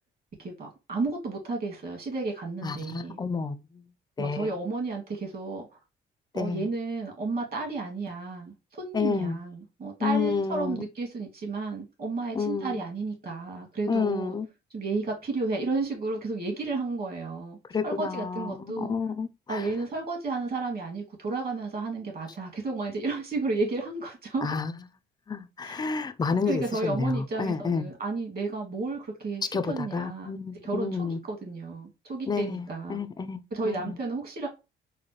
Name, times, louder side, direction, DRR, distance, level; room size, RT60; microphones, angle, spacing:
voice 1, 0.4-3.2 4.2-5.7 6.3-14.4 14.7-17.6 17.8-18.9 19.5-24.5 25.6-25.9 26.5-30.3 30.6-33.0 33.5-34.5, right 3 dB, 50° right, 1.8 m, -32 dB
voice 2, 2.6-3.8 4.2-4.5 6.3-6.7 8.9-9.4 10.0-10.8 12.3-12.8 13.9-14.5 17.7-19.6 24.4-24.7 25.3-27.9 29.5-31.2 32.3-34.0, left 5 dB, 20° left, 0.4 m, -30 dB
4.1 x 2.1 x 3.1 m
cardioid pair, 90°, 20 cm